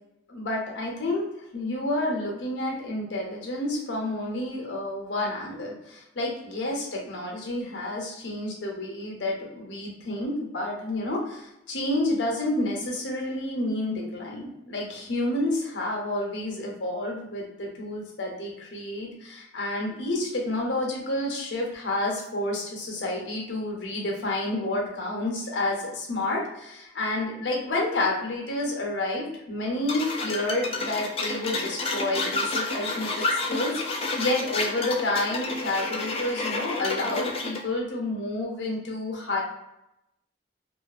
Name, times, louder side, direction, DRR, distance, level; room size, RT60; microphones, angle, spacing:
voice 1, 0.3-39.4, left 1 dB, 80° left, -1 dB, 0.7 m, -29 dB
sound 1, 29.9-37.6, left 2 dB, 30° left, 0.3 m, -30 dB
2.4 x 2.4 x 2.4 m, 0.87 s
head